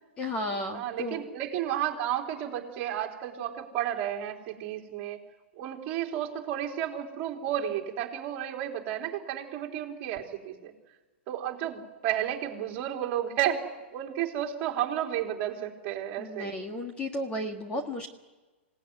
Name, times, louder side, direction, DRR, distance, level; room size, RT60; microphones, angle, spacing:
voice 1, 0.2-1.3 16.2-18.1, left 1 dB, 15° left, 3 dB, 1.8 m, -33 dB
voice 2, 0.7-5.2 5.6-10.7 11.3-13.6 13.9-16.5, right 11 dB, 30° right, 0 dB, 3.7 m, -32 dB
27.0 x 18.0 x 9.6 m, 1.2 s
hypercardioid pair, 160°, 7 cm